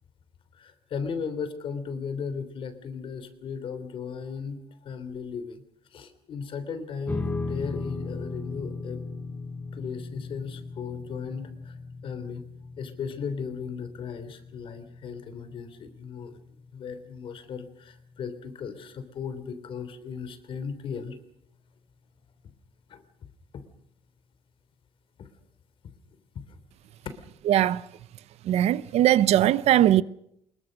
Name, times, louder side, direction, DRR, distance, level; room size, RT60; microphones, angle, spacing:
voice 1, 0.6-4.6 4.8-5.6 5.9-9.0 9.7-11.8 12.0-12.4 12.8-16.4 16.7-21.2 22.9-23.0 23.5-23.6 25.2-25.3 26.3-26.4, left 6 dB, 55° left, 3.2 m, -36 dB
sound 1, 7.1-19.6, left 3 dB, 15° left, 2.0 m, -38 dB
voice 2, 27.4-27.9 28.4-30.0, right 12 dB, 80° right, 0.8 m, -20 dB
24.5 x 22.0 x 6.5 m
cardioid pair, 160°, 11 cm